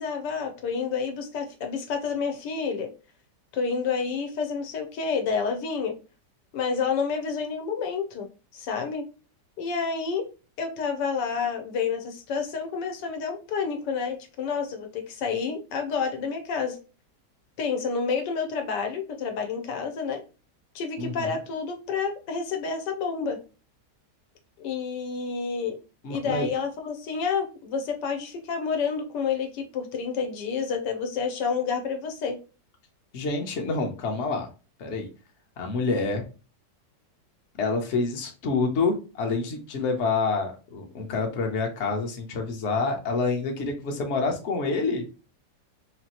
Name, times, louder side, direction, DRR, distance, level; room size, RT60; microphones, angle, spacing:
voice 1, 0.0-2.9 3.5-6.0 6.5-8.3 8.5-9.0 9.6-10.3 10.6-16.8 17.6-20.2 20.7-23.4 24.6-25.8 26.1-32.4, left 5 dB, 80° left, 5 dB, 1.4 m, -29 dB
voice 2, 21.0-21.4 26.0-26.5 33.1-34.5 34.8-35.1 35.6-36.2 37.6-45.0, left 4 dB, 50° left, 2 dB, 1.0 m, -27 dB
4.1 x 2.9 x 2.9 m, 0.33 s
omnidirectional pair, 1.8 m